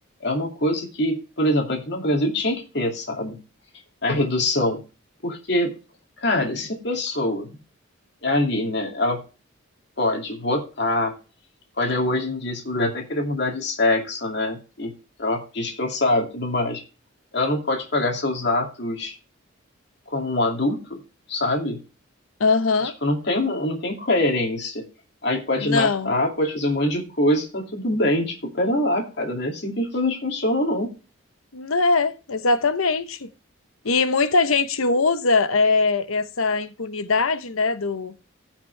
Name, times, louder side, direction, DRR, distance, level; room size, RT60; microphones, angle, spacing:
voice 1, 0.2-3.4 4.0-4.8 5.2-5.7 6.2-7.5 8.2-9.2 10.0-11.1 11.8-14.9 15.2-16.8 17.3-19.1 20.1-21.0 21.3-21.8 23.0-24.8 25.2-30.9, left 1 dB, 55° left, 2.4 m, -24 dB
voice 2, 22.4-22.9 25.6-26.1 31.5-33.3 33.8-38.1, left 3 dB, 85° left, 0.9 m, -21 dB
16.0 x 5.9 x 3.3 m
head